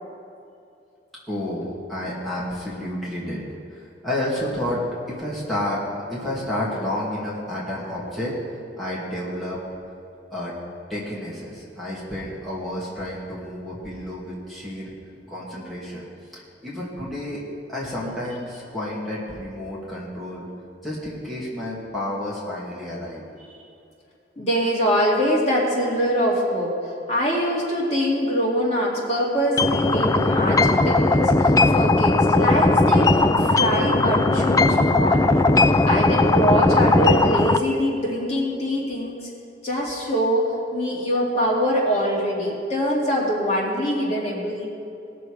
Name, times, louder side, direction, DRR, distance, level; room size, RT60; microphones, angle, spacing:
voice 1, 1.3-3.4 3.7-5.8 6.1-8.4 8.8-9.6 10.3-10.5 10.9-14.9 15.3-16.0 16.3-17.4 17.7-20.4 20.8-23.2, left 1 dB, ahead, -9 dB, 2.4 m, -30 dB
voice 2, 24.4-26.7 27.1-39.3 39.6-44.7, equal, 35° left, -5 dB, 2.7 m, -24 dB
sound 1, 29.6-37.6, left 2 dB, 20° left, 0.4 m, -18 dB
20.0 x 6.8 x 4.9 m, 2.7 s
head